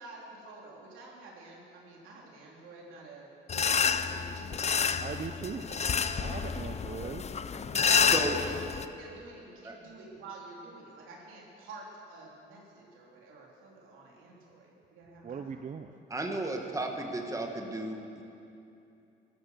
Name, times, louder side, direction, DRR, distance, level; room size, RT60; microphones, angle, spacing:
voice 1, 0.0-5.3 5.7-6.3 7.8-15.7, right 3 dB, 90° right, -2 dB, 3.4 m, -49 dB
sound 1, 3.5-8.8, left 6 dB, 35° left, 0.6 m, -29 dB
voice 2, 5.0-5.7 6.2-7.2 15.2-16.0, right 6 dB, 40° right, 8 dB, 0.6 m, -39 dB
voice 3, 16.1-18.2, right 2 dB, 15° right, 2 dB, 1.9 m, -34 dB
16.0 x 13.0 x 6.8 m, 2.7 s
cardioid pair, 90°, 20 cm